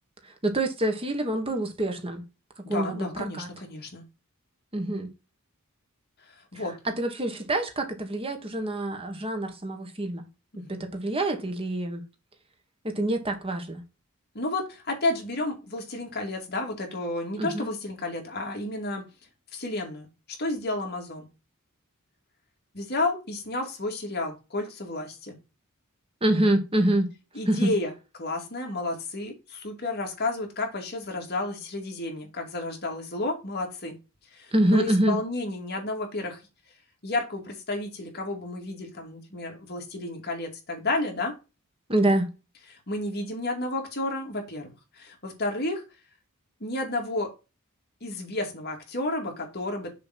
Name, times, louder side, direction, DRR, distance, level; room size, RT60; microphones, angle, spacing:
voice 1, 0.4-2.2 2.7-3.5 4.7-5.1 6.8-10.3 10.7-12.0 12.8-13.8 17.4-17.7 26.2-27.1 27.5-27.7 34.5-35.2 41.9-42.3, right 1 dB, 25° right, 1.5 m, -26 dB
voice 2, 2.7-4.1 6.5-6.8 10.6-10.8 14.3-19.1 19.5-20.1 20.4-21.3 22.7-25.4 27.3-27.9 28.2-34.0 34.3-36.4 37.0-41.3 42.9-45.8 46.6-47.3 48.0-50.0, left 2 dB, 45° left, 2.4 m, -31 dB
6.8 x 4.0 x 5.9 m
head